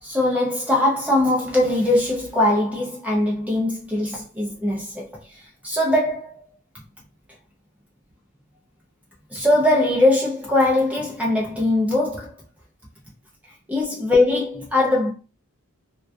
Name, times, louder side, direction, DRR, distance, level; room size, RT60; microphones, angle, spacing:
voice 1, 0.0-6.4 9.3-12.3 13.7-15.1, left 1 dB, 5° right, 0.4 m, -21 dB
2.5 x 2.2 x 2.3 m
head